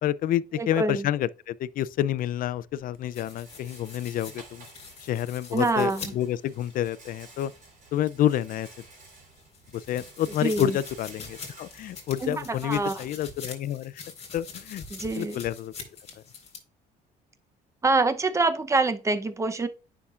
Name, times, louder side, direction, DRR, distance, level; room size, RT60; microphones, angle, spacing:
voice 1, 0.0-4.6 5.0-7.5 7.9-8.7 9.7-14.0 14.3-14.8 15.2-15.7, left 12 dB, 55° left, 0.4 m, -28 dB
voice 2, 0.5-1.1 5.5-6.0 10.4-10.8 12.2-13.0 14.9-15.4 17.8-19.7, right 3 dB, 15° right, 0.7 m, -25 dB
Rattle, 1.9-12.9, right 3 dB, 50° right, 3.9 m, -52 dB
sound 1, 3.1-7.8 8.2-16.6, left 5 dB, 40° left, 3.7 m, -45 dB
9.6 x 5.8 x 2.4 m
cardioid pair, 110°, 17 cm